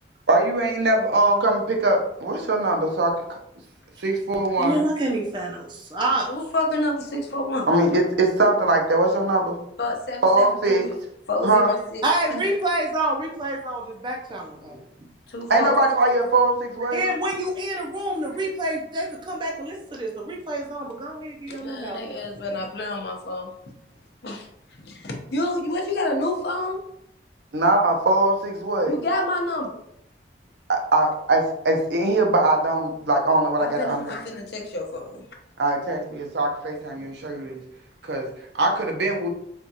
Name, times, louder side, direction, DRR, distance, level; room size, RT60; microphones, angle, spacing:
voice 1, 0.3-3.4 4.0-4.9 7.7-9.6 10.2-10.9 11.4-11.7 15.5-17.0 27.5-29.0 30.7-34.2 35.6-37.6 38.0-38.3 38.5-39.3, right 2 dB, 70° right, 2 dB, 0.7 m, -21 dB
voice 2, 4.6-6.3 12.0-14.8 16.9-22.2 37.0-37.1 37.4-37.5, right 1 dB, 25° right, 0 dB, 0.4 m, -27 dB
voice 3, 6.3-7.7 9.8-10.9 11.3-12.0 12.3-12.4 15.3-15.8 21.6-23.5 24.2-24.5 24.8-26.8 28.9-29.8 33.6-35.2, left 1 dB, 65° left, 2 dB, 0.7 m, -28 dB
4.3 x 2.3 x 2.7 m, 0.74 s
head